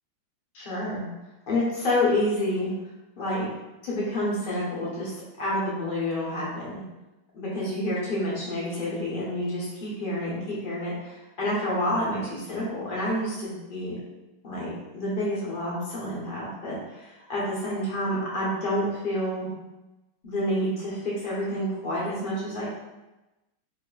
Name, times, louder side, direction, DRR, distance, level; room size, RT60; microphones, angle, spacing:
voice 1, 0.5-1.0 1.5-2.7 3.2-3.5 3.8-6.8 7.3-13.9 14.4-19.5 20.2-22.7, left 1 dB, 50° left, -6 dB, 0.6 m, -29 dB
4.2 x 2.4 x 2.2 m, 1.0 s
omnidirectional pair, 2.3 m